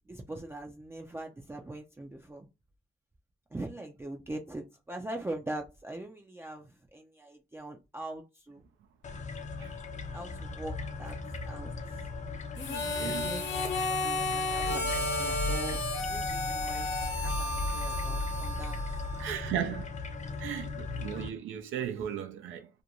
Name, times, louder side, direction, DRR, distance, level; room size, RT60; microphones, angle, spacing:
voice 1, 0.1-2.5 3.5-8.6 10.1-11.2 11.5-11.7 12.6-13.4 13.8-15.8 16.1-16.9 17.2-18.8, right 1 dB, 10° right, 0.4 m, -42 dB
sound 1, 9.0-21.3, left 3 dB, 40° left, 0.5 m, -37 dB
Harmonica, 12.6-19.5, left 2 dB, 65° left, 1.0 m, -33 dB
voice 2, 13.0-13.3 19.2-20.0 20.4-22.7, right 9 dB, 80° right, 0.5 m, -36 dB
2.5 x 2.2 x 2.9 m
cardioid pair, 90°, 20 cm